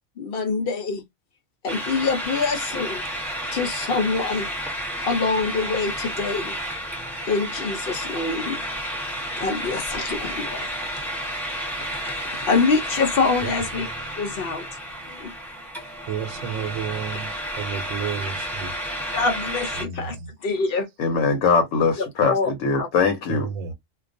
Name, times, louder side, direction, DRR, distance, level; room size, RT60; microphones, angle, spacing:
voice 1, 0.2-1.0 1.6-3.0 3.5-4.5 5.0-6.5 7.3-8.6 9.4-10.7 12.0-13.9 14.2-14.7 15.1-15.3 19.1-20.2 20.4-20.9 22.0-22.9, left 4 dB, 60° left, 0.7 m, -25 dB
sound 1, 1.7-19.9, equal, ahead, 1.0 m, -31 dB
voice 2, 16.1-18.7 19.8-20.3 23.3-23.7, right 7 dB, 85° right, 1.0 m, -31 dB
voice 3, 21.0-23.5, left 5 dB, 90° left, 1.0 m, -21 dB
2.3 x 2.2 x 2.5 m
omnidirectional pair, 1.3 m